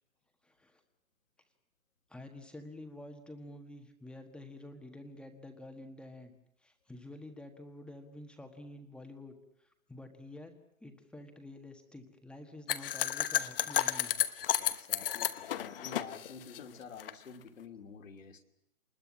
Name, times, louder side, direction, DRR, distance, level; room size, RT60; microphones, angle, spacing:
voice 1, 0.4-0.8 2.1-6.3 6.6-14.2, left 1 dB, ahead, 5 dB, 1.5 m, -49 dB
sound 1, 12.7-17.1, left 11 dB, 40° left, 1.1 m, -32 dB
voice 2, 14.6-18.4, left 5 dB, 65° left, 4 dB, 2.9 m, -49 dB
26.0 x 20.5 x 7.3 m, 0.78 s
figure-of-eight pair, 135°, 42 cm